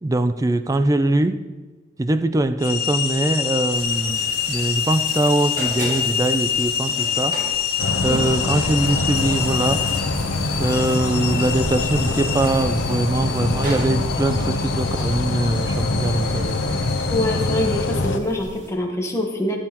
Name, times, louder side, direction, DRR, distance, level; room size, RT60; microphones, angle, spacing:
voice 1, 0.0-1.4 2.0-7.4 8.0-9.8 10.6-16.6, right 2 dB, 20° right, 11 dB, 0.4 m, -22 dB
sound 1, 2.6-17.9, left 8 dB, 55° left, 0.8 m, -27 dB
sound 2, 3.7-18.7, right 2 dB, 45° right, 2.1 m, -39 dB
sound 3, 7.8-18.2, left 2 dB, 85° left, 0.8 m, -24 dB
voice 2, 17.1-19.6, left 1 dB, 15° left, 0 dB, 1.2 m, -24 dB
14.5 x 7.8 x 3.0 m, 1.3 s
head